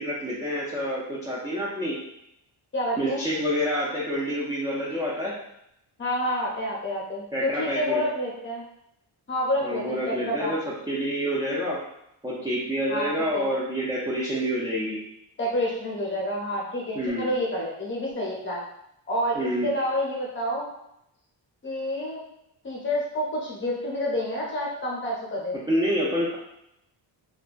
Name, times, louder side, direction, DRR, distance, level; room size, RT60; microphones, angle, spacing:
voice 1, 0.0-2.0 3.0-5.3 7.3-8.0 9.6-10.6 10.9-11.8 12.2-15.0 17.0-17.3 19.4-19.7 25.7-26.4, equal, 10° right, -7 dB, 0.3 m, -27 dB
voice 2, 2.7-3.2 6.0-8.6 9.3-10.5 12.9-13.1 13.3-13.5 15.4-18.6 19.1-20.7 21.6-22.2 22.6-25.6, left 1 dB, 25° left, -4 dB, 0.7 m, -28 dB
2.3 x 2.2 x 2.4 m, 0.80 s
cardioid pair, 120°, 45 cm